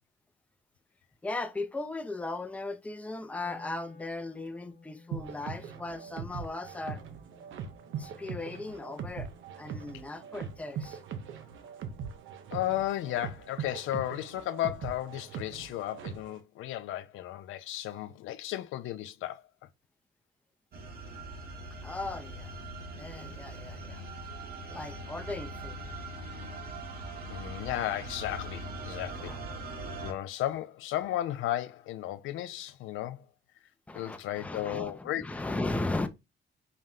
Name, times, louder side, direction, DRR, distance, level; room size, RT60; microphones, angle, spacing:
voice 1, 1.2-7.0 8.0-9.3 9.6-11.0 21.8-22.5 23.0-24.1 24.7-25.8 29.2-29.4 30.0-30.1 33.9-36.1, left 2 dB, 5° left, 0.4 m, -37 dB
Wind instrument woodwind instrument, 3.4-9.5, left 3 dB, 40° left, 1.2 m, -55 dB
sound 1, 5.1-16.4, right 7 dB, 75° right, 0.7 m, -41 dB
voice 2, 12.5-19.4 27.3-29.4 30.0-33.3 33.9-35.3, left 13 dB, 80° left, 0.4 m, -34 dB
sound 2, 20.7-30.1, right 2 dB, 50° right, 0.9 m, -41 dB
4.3 x 2.1 x 3.6 m
cardioid pair, 90°, 20 cm